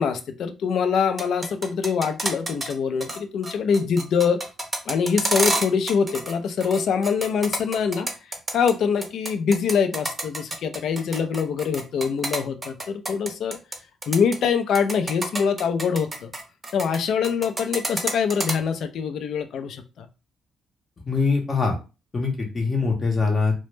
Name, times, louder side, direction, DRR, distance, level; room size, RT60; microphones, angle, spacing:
voice 1, 0.0-4.4 4.9-8.1 8.5-13.6 14.1-16.3 16.7-20.1, left 6 dB, 70° left, 8 dB, 0.4 m, -24 dB
sound 1, 1.0-2.7 3.0-3.2 3.4-6.3 6.6-8.7 9.0-13.8 14.0-14.4 14.7-17.0 17.2-18.5, right 2 dB, 20° right, 0.6 m, -28 dB
voice 2, 21.1-21.8 22.1-23.5, left 4 dB, 35° left, 0 dB, 0.6 m, -23 dB
2.1 x 2.1 x 3.1 m, 0.30 s
cardioid pair, 90°, 0 cm